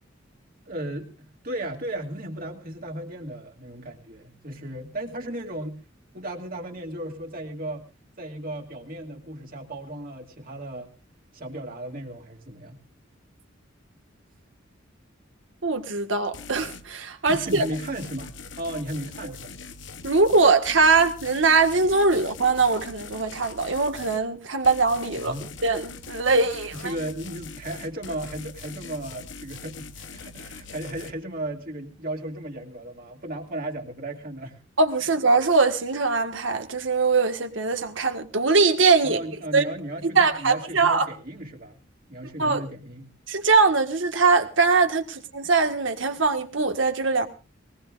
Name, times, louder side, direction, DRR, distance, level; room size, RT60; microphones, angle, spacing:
voice 1, 0.7-5.8 6.1-7.8 8.2-10.9 11.3-12.8 17.3-19.6 25.1-25.5 26.7-34.6 39.0-41.8 42.1-43.1, right 1 dB, 50° right, 2.4 m, -35 dB
voice 2, 15.6-17.6 20.0-25.3 25.6-26.9 34.8-39.2 39.5-39.6 40.1-41.1 42.4-42.6 43.3-47.3, right 4 dB, 75° right, 1.7 m, -21 dB
sound 1, 16.3-16.9 17.3-24.3 24.6-31.1, left 4 dB, 70° left, 1.0 m, -42 dB
20.5 x 19.5 x 2.5 m
head